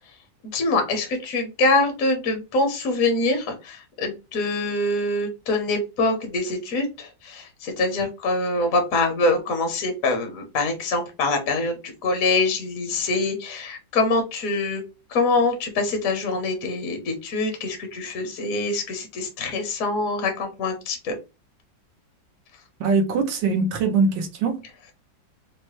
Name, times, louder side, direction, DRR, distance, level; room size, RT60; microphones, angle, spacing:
voice 1, 0.5-14.8 15.1-21.2, left 2 dB, 55° left, 1.0 m, -24 dB
voice 2, 22.8-24.9, right 4 dB, 80° right, 1.5 m, -23 dB
4.5 x 2.1 x 3.0 m
omnidirectional pair, 2.1 m